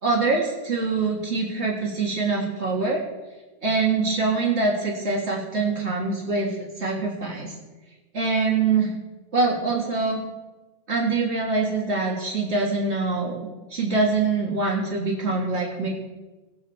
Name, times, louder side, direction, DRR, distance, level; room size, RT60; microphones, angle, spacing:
voice 1, 0.0-3.0 3.6-7.5 8.1-8.9 9.3-10.2 10.9-15.9, right 3 dB, 90° right, -2 dB, 2.1 m, -24 dB
18.5 x 7.1 x 4.4 m, 1.2 s
omnidirectional pair, 1.1 m